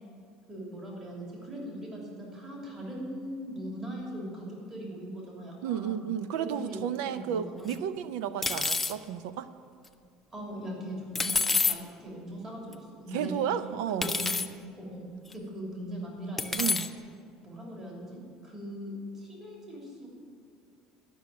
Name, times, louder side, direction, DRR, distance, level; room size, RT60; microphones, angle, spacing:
voice 1, 0.5-6.1 6.4-6.8 7.1-7.6 10.3-13.4 13.9-14.3 14.8-15.0 15.3-16.8 17.4-20.1, equal, 25° right, -3 dB, 3.0 m, -40 dB
voice 2, 5.6-9.5 13.1-14.1 16.5-16.9, right 9 dB, 85° right, 13 dB, 0.6 m, -32 dB
sound 1, 7.7-7.8 8.4-8.9 11.1-11.8 12.7-12.8 14.0-14.5 15.3-15.4 16.4-16.9, left 4 dB, 10° left, 0.5 m, -27 dB
12.0 x 6.2 x 8.4 m, 2.3 s
cardioid pair, 135°, 2 cm